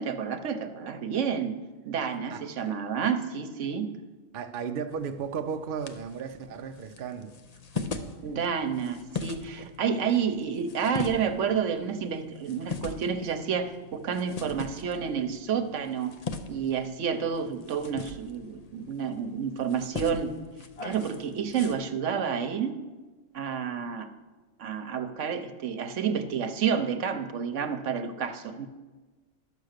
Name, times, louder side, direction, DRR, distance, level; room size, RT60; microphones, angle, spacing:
voice 1, 0.0-1.6 1.9-3.9 8.2-16.1 16.5-20.3 20.8-22.7 23.3-24.1 24.6-28.7, right 7 dB, 75° right, 1.1 m, -30 dB
voice 2, 2.3-2.8 4.3-7.4 7.7-8.0 9.6-9.7, right 6 dB, 55° right, 0.7 m, -35 dB
sound 1, 4.9-21.7, left 4 dB, 40° left, 0.6 m, -41 dB
11.5 x 7.0 x 6.5 m
omnidirectional pair, 1.3 m